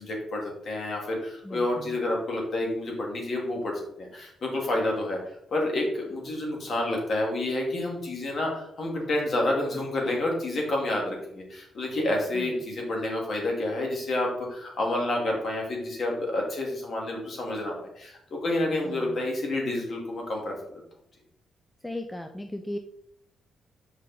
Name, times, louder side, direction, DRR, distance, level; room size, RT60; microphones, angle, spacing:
voice 1, 0.0-3.7 4.0-5.2 5.5-20.5, left 1 dB, 50° left, 0 dB, 2.3 m, -29 dB
voice 2, 21.8-22.8, left 1 dB, 10° left, 5 dB, 0.5 m, -35 dB
6.4 x 5.1 x 4.2 m, 0.74 s
cardioid pair, 140°, 0 cm